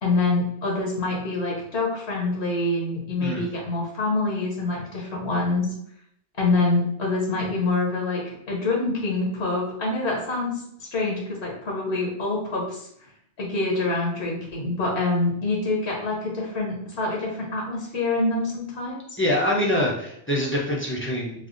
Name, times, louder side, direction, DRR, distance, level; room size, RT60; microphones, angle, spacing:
voice 1, 0.0-5.7 6.4-12.8 13.4-19.0, left 2 dB, 70° left, -2 dB, 1.1 m, -26 dB
voice 2, 19.2-21.5, left 1 dB, 15° left, -5 dB, 0.6 m, -25 dB
3.3 x 2.0 x 3.8 m, 0.72 s
omnidirectional pair, 1.1 m